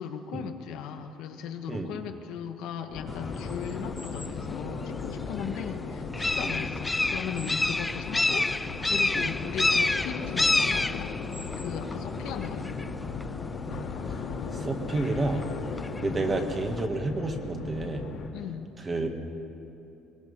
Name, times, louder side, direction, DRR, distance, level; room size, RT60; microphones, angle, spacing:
voice 1, 0.0-11.1 11.6-12.9 16.0-16.3 18.3-18.8, left 7 dB, 80° left, 5 dB, 1.5 m, -38 dB
sound 1, 2.9-18.3, left 5 dB, 60° left, 2.2 m, -37 dB
sound 2, 3.1-16.9, left 2 dB, 10° left, 0.4 m, -31 dB
voice 2, 14.5-15.4 16.0-18.0 18.8-19.1, right 2 dB, 25° right, 4 dB, 2.0 m, -30 dB
22.0 x 21.0 x 5.6 m, 2.9 s
cardioid pair, 135°, 0 cm